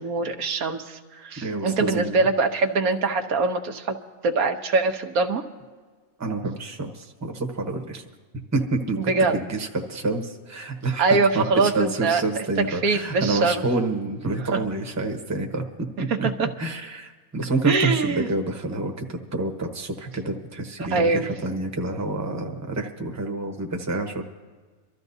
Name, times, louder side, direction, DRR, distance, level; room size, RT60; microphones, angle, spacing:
voice 1, 0.0-4.0 4.2-5.4 9.0-9.4 11.0-13.6 14.5-14.6 16.1-16.5 17.7-18.3 20.8-21.3, right 4 dB, 85° right, 5 dB, 1.4 m, -23 dB
voice 2, 1.4-2.2 6.2-8.0 8.5-15.6 16.2-16.3 16.6-24.2, right 2 dB, 15° right, 3 dB, 0.9 m, -28 dB
24.5 x 13.5 x 2.7 m, 1.4 s
omnidirectional pair, 1.5 m